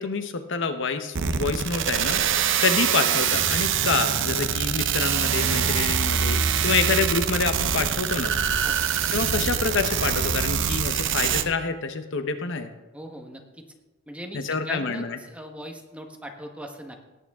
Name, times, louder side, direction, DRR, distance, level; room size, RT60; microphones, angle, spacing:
voice 1, 0.0-2.2 2.6-8.3 9.1-12.7 14.3-15.2, left 4 dB, 65° left, 8 dB, 0.9 m, -27 dB
sound 1, 1.1-11.4, right 8 dB, 65° right, 0.7 m, -24 dB
voice 2, 12.9-13.6 14.1-17.0, equal, 5° right, 3 dB, 1.2 m, -39 dB
17.5 x 9.1 x 3.6 m, 1.1 s
head